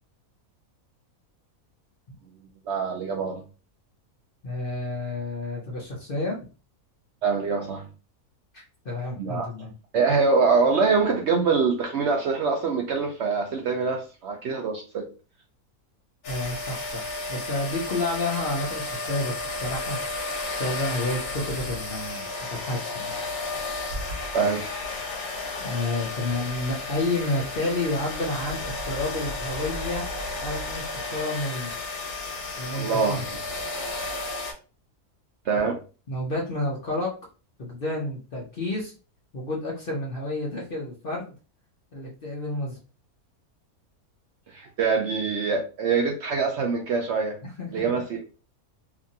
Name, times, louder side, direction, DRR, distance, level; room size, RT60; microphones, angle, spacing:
voice 1, 2.7-3.4 7.2-7.8 9.2-9.5 9.9-15.1 24.3-24.6 32.7-33.2 35.5-35.8 44.5-47.4 47.7-48.0, right 4 dB, 65° right, 1 dB, 0.7 m, -24 dB
voice 2, 4.4-6.4 8.5-9.7 16.3-17.0 17.3-20.0 20.5-23.1 25.6-30.0 30.4-31.7 32.6-33.2 36.1-37.1 37.6-38.9 39.3-41.3 41.9-42.8 47.4-47.9, left 2 dB, 50° left, -2 dB, 0.7 m, -30 dB
sound 1, 16.2-34.5, left 2 dB, 85° left, 1.4 m, -33 dB
2.8 x 2.5 x 2.6 m, 0.34 s
omnidirectional pair, 1.5 m